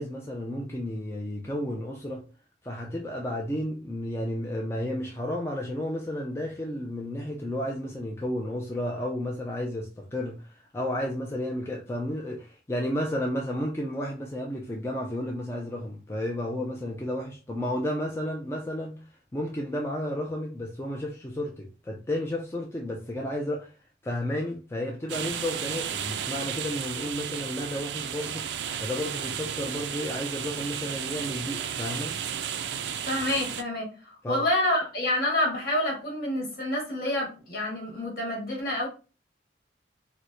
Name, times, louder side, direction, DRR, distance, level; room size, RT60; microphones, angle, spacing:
voice 1, 0.0-2.2 2.6-19.0 19.3-23.7 24.0-28.5 28.8-32.1 34.2-34.5, left 1 dB, 15° left, 0.4 m, -32 dB
sound 1, 25.1-33.6, right 8 dB, 80° right, 0.3 m, -33 dB
voice 2, 33.1-38.9, left 1 dB, 55° left, 1.5 m, -28 dB
4.5 x 2.0 x 2.6 m
head